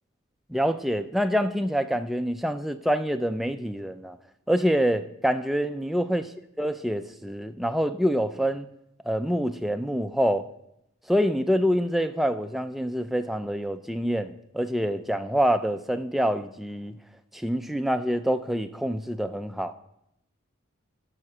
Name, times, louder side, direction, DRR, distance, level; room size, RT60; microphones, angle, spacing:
voice 1, 0.5-4.2 4.5-6.2 6.6-8.7 9.0-10.5 11.1-17.0 17.3-19.7, equal, ahead, 0.3 m, -26 dB
11.0 x 6.5 x 4.9 m
head